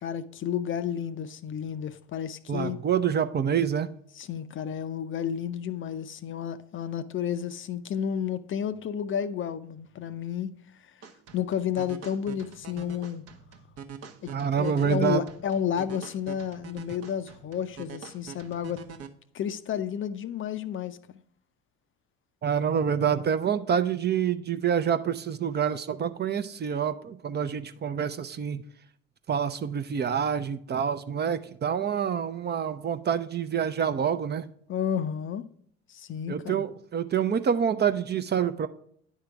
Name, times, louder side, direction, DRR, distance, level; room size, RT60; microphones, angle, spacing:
voice 1, 0.0-2.8 4.1-10.5 10.8-10.9 11.3-13.2 14.2-14.3 14.6-18.8 19.3-21.0 34.7-35.4 35.9-36.6, left 8 dB, 40° left, 0.5 m, -31 dB
voice 2, 2.5-3.9 14.3-15.3 22.4-28.6 29.3-34.4 36.3-38.7, right 8 dB, 35° right, 0.5 m, -27 dB
sound 1, 11.0-19.1, right 6 dB, 55° right, 0.9 m, -45 dB
9.5 x 3.7 x 4.6 m
hypercardioid pair, 60°, 31 cm